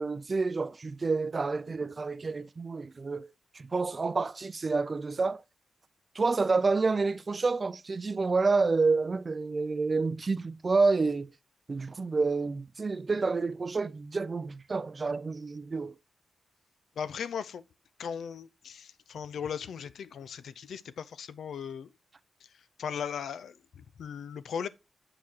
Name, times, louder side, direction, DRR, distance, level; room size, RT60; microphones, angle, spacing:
voice 1, 0.0-3.3 3.5-5.4 6.2-11.3 11.7-16.0, right 4 dB, 35° right, 0.3 m, -28 dB
voice 2, 17.0-17.6 18.0-21.9 22.8-24.7, left 7 dB, 90° left, 0.4 m, -37 dB
8.3 x 4.9 x 2.8 m
wide cardioid pair, 125°, 0 cm